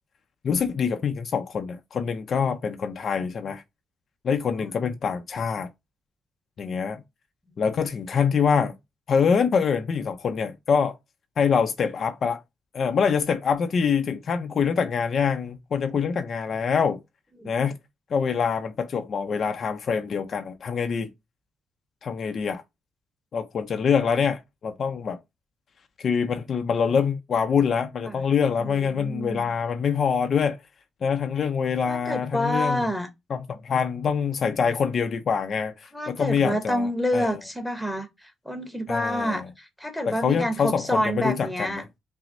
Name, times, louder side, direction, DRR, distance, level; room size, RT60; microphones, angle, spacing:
voice 1, 0.4-3.6 4.2-5.7 6.6-7.0 7.6-8.7 9.1-11.0 11.4-12.4 12.7-17.0 17.4-17.8 18.1-21.1 22.0-22.6 23.3-25.2 26.0-30.6 31.0-32.9 33.3-37.4 38.9-39.5 40.1-41.8, left 6 dB, 50° left, 0.5 m, -25 dB
voice 2, 28.6-29.5 31.9-33.1 35.9-38.1 38.4-41.8, equal, 5° left, 1.0 m, -28 dB
5.8 x 2.1 x 2.6 m
cardioid pair, 90°, 0 cm